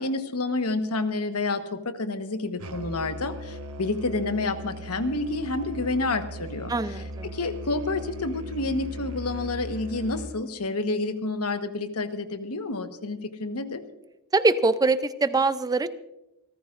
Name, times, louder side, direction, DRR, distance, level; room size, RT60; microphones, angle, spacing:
voice 1, 0.0-13.8, left 2 dB, 80° left, 8 dB, 1.2 m, -29 dB
Musical instrument, 2.6-10.4, equal, 70° right, 1.2 m, -38 dB
voice 2, 6.7-7.3 14.3-15.9, right 3 dB, 15° right, 13 dB, 0.4 m, -23 dB
28.0 x 14.5 x 2.5 m, 0.94 s
head